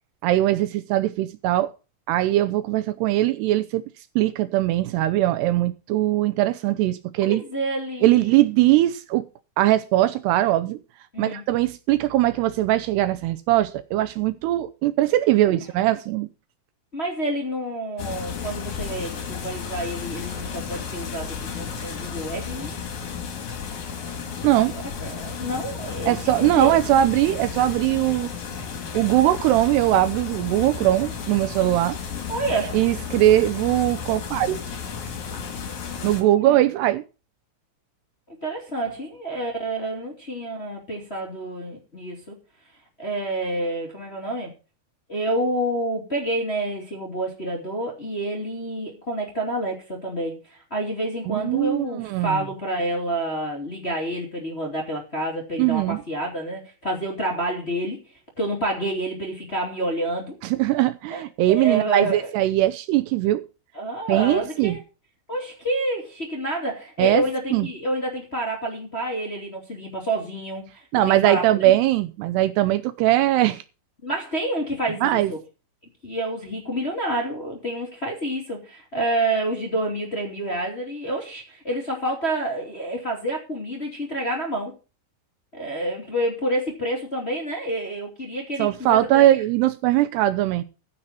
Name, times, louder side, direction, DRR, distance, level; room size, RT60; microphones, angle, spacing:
voice 1, 0.2-1.7 2.1-3.9 4.2-7.4 8.0-9.3 9.6-10.8 11.2-16.3 24.4-24.8 26.1-28.3 28.9-32.0 32.7-34.6 36.0-37.0 51.3-52.4 55.6-56.0 60.5-63.4 64.1-64.8 67.0-67.2 67.5-67.7 70.9-73.6 75.0-75.3 88.6-90.6, right 14 dB, 80° right, 2.6 m, -20 dB
voice 2, 7.2-8.4 11.1-11.4 15.7-15.8 16.9-22.7 24.8-26.8 32.3-32.8 36.4-36.6 38.3-42.4 43.0-44.5 45.1-58.0 58.4-60.4 61.1-61.2 61.5-62.3 63.7-64.8 65.3-71.6 74.0-75.4 76.0-84.7 85.5-89.3, right 1 dB, 20° left, 2.1 m, -28 dB
sound 1, 18.0-36.2, left 6 dB, 50° left, 2.9 m, -33 dB
15.0 x 6.5 x 5.7 m
omnidirectional pair, 5.1 m